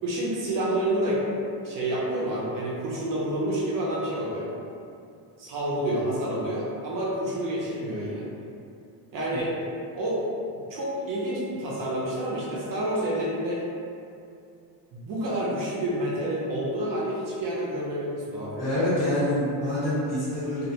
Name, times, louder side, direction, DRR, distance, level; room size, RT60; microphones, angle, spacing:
voice 1, 0.0-1.2 1.6-4.5 5.4-8.3 9.1-9.5 9.9-10.2 10.7-13.6 14.9-18.8, right 1 dB, 50° right, -6 dB, 0.6 m, -29 dB
voice 2, 18.6-20.7, left 1 dB, 35° left, -12 dB, 1.4 m, -26 dB
2.4 x 2.1 x 2.8 m, 2.6 s
cardioid pair, 130°, 43 cm